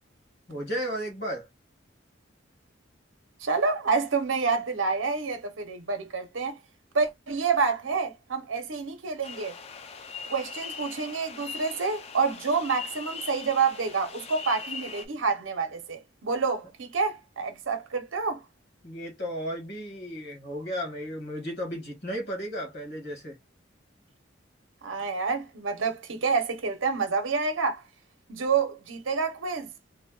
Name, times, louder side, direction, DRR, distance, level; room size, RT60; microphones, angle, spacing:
voice 1, 0.5-1.5 18.8-23.4, equal, 60° left, 1.5 m, -34 dB
voice 2, 3.4-6.6 6.9-9.6 10.3-18.4 24.8-27.8 28.3-29.7, right 4 dB, 80° right, 0.7 m, -28 dB
sound 1, 9.2-15.1, left 5 dB, 30° left, 0.4 m, -40 dB
3.2 x 2.2 x 2.2 m
head